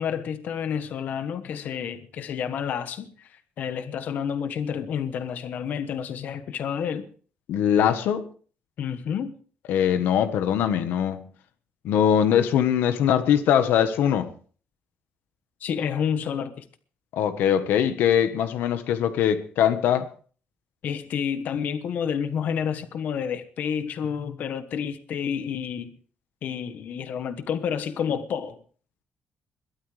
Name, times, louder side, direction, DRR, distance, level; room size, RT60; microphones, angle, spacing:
voice 1, 0.0-7.0 8.8-9.3 15.6-16.6 20.8-26.0 26.4-28.6, left 7 dB, 55° left, 1.2 m, -29 dB
voice 2, 7.5-8.2 9.7-11.3 11.8-14.3 17.1-20.1, left 9 dB, 80° left, 1.3 m, -22 dB
22.0 x 13.0 x 3.4 m
cardioid pair, 170°, 3 cm